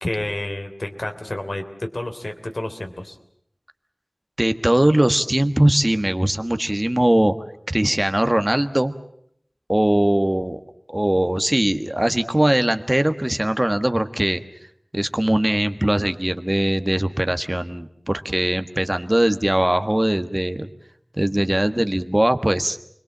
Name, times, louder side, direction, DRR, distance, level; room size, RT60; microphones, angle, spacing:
voice 1, 0.0-3.2, left 1 dB, 60° left, 5 dB, 3.2 m, -29 dB
voice 2, 4.4-7.3 7.7-8.9 9.7-10.6 10.9-14.4 14.9-20.7 21.2-22.8, right 1 dB, 25° right, 8 dB, 1.4 m, -20 dB
29.0 x 22.0 x 7.3 m, 0.69 s
wide cardioid pair, 45°, 0 cm